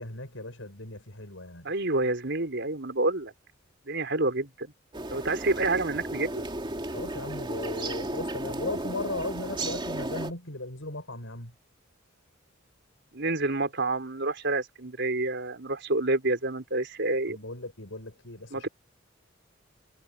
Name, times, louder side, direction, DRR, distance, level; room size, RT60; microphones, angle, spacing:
voice 1, 0.0-1.7 6.9-11.5 17.2-18.7, left 2 dB, 90° left, 6.3 m, -37 dB
voice 2, 1.6-3.3 3.9-4.7 5.1-6.5 13.1-17.4 18.5-18.7, right 2 dB, 65° right, 4.6 m, -28 dB
sound 1, 4.9-10.3, right 1 dB, 25° right, 3.0 m, -34 dB
head